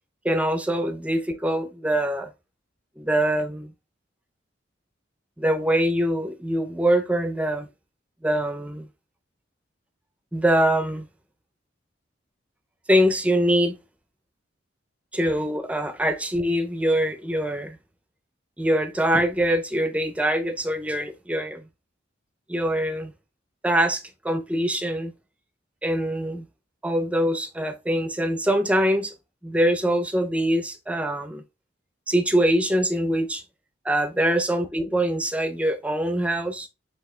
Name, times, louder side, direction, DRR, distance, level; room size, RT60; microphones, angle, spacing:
voice 1, 0.2-2.3 3.0-3.7 5.4-7.7 8.2-8.9 10.3-11.1 12.9-13.8 15.1-17.8 18.6-21.6 22.5-23.1 23.6-25.1 25.8-26.4 26.8-29.1 29.4-31.4 32.1-33.4 33.8-36.7, right 1 dB, 5° right, 0.4 m, -23 dB
7.8 x 2.7 x 2.2 m
head